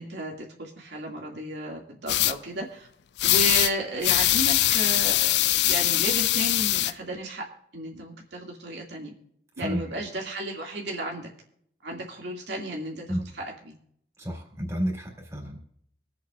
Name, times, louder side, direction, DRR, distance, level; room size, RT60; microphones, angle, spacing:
voice 1, 0.0-2.9 3.2-5.4 5.6-7.5 7.7-9.1 9.6-11.3 11.8-13.8, right 1 dB, 75° right, -1 dB, 2.2 m, -33 dB
sound 1, 2.1-2.3 3.2-3.7 4.0-6.9, left 15 dB, 70° left, 0.4 m, -22 dB
voice 2, 14.2-15.6, equal, 15° right, 0 dB, 3.6 m, -31 dB
25.0 x 8.5 x 2.5 m, 0.68 s
head